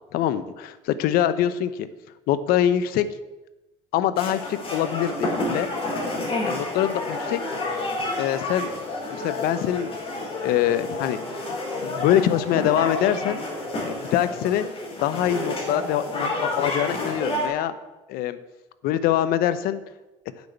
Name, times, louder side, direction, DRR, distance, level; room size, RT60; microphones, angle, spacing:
voice 1, 0.1-1.9 2.3-3.1 3.9-5.7 6.4-7.4 8.2-8.7 9.1-9.9 10.4-11.2 11.8-13.4 13.8-14.6 15.0-17.7 18.1-18.4 18.8-19.8, left 11 dB, 70° left, 13 dB, 0.8 m, -24 dB
sound 1, 4.2-17.5, left 2 dB, 35° left, 4.1 m, -30 dB
8.4 x 6.2 x 8.3 m, 1.0 s
supercardioid pair, 95°, 16 cm